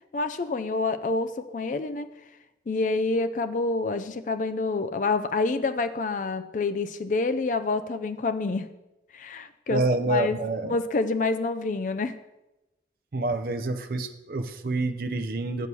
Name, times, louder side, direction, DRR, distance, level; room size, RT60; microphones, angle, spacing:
voice 1, 0.1-2.1 2.7-8.7 9.1-10.4 10.6-12.2, left 3 dB, 45° left, 10 dB, 0.4 m, -27 dB
voice 2, 9.7-10.7 13.1-15.7, right 2 dB, 55° right, 7 dB, 0.5 m, -27 dB
8.2 x 4.5 x 6.9 m, 0.99 s
head